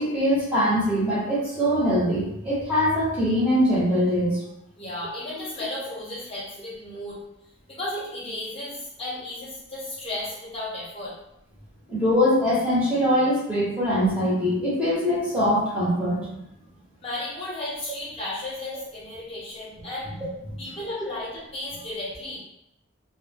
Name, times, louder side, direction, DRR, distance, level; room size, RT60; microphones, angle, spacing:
voice 1, 0.0-4.4 11.9-16.4, equal, 5° right, -9 dB, 0.8 m, -22 dB
voice 2, 4.8-7.2 7.7-11.1 17.0-20.1 20.6-22.4, left 1 dB, 30° left, -6 dB, 0.8 m, -34 dB
2.1 x 2.1 x 3.3 m, 0.85 s
head